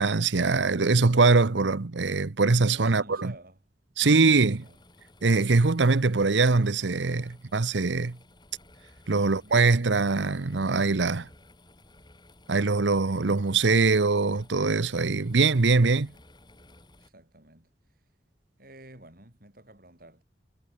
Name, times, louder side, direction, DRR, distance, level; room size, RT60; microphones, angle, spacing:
voice 1, 0.0-3.3 4.0-4.6 5.2-8.2 9.1-11.3 12.5-16.1, right 3 dB, 85° right, 0.9 m, -22 dB
voice 2, 2.7-3.6 3.9-4.8 9.2-9.7 17.0-17.7 18.6-20.2, right 1 dB, 50° right, 7.2 m, -50 dB
sound 1, 4.1-17.1, left 1 dB, 25° left, 6.3 m, -56 dB
head